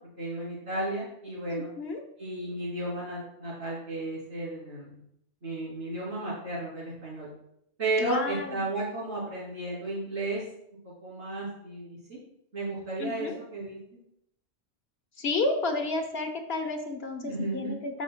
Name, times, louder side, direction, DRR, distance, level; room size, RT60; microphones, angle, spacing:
voice 1, 0.2-1.7 2.2-5.0 5.4-7.3 7.8-10.4 10.7-10.8 11.0-12.2 12.5-13.8 17.2-17.7, right 2 dB, 70° right, -10 dB, 3.2 m, -33 dB
voice 2, 1.5-2.0 8.0-8.5 13.0-13.4 15.2-18.0, left 3 dB, 60° left, 4 dB, 1.2 m, -31 dB
13.5 x 5.9 x 2.2 m, 0.76 s
omnidirectional pair, 1.2 m